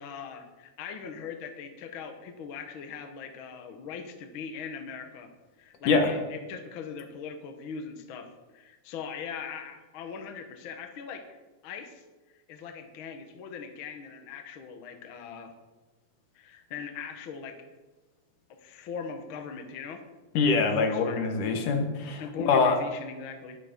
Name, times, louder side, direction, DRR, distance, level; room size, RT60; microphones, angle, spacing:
voice 1, 0.0-5.3 5.6-11.4 11.6-12.0 12.5-15.5 16.3-17.6 18.5-20.0 20.7-21.2 22.2-23.6, left 6 dB, 55° left, 6 dB, 1.5 m, -40 dB
voice 2, 20.3-22.8, left 4 dB, 75° left, 5 dB, 2.8 m, -24 dB
11.0 x 11.0 x 5.2 m, 1.2 s
omnidirectional pair, 3.6 m